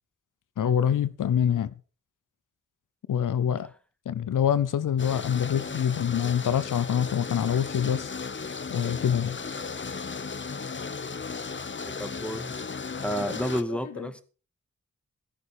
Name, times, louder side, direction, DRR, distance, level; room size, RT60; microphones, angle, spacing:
voice 1, 0.6-1.7 3.1-3.7 4.1-8.1 8.7-9.4 13.7-14.1, left 9 dB, 90° left, 0.7 m, -25 dB
sound 1, 5.0-13.6, left 5 dB, 40° left, 0.8 m, -36 dB
voice 2, 11.8-12.7 13.0-14.2, equal, 5° left, 1.9 m, -32 dB
13.0 x 10.5 x 4.8 m
cardioid pair, 40°, 31 cm